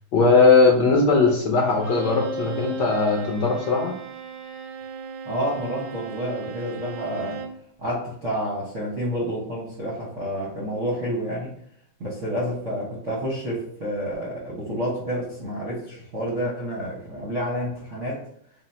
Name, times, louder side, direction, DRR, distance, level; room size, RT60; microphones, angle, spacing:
voice 1, 0.1-3.9, left 4 dB, 70° left, -1 dB, 1.1 m, -19 dB
Bowed string instrument, 1.7-7.6, right 4 dB, 85° right, 1.5 m, -36 dB
voice 2, 5.3-7.5 7.8-11.5 12.0-18.2, equal, 60° right, -6 dB, 0.8 m, -29 dB
3.8 x 2.0 x 4.2 m, 0.67 s
omnidirectional pair, 2.4 m